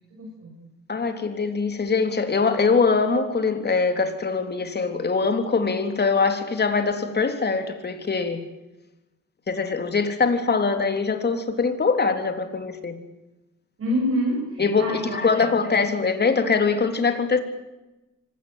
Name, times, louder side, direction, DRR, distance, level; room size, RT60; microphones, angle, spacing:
voice 1, 0.1-0.5 13.8-15.4, equal, 50° right, -1 dB, 7.6 m, -27 dB
voice 2, 0.9-8.4 9.5-13.0 14.6-17.4, left 4 dB, 35° left, 7 dB, 3.6 m, -23 dB
25.5 x 18.0 x 9.1 m, 1.0 s
cardioid pair, 90°, 30 cm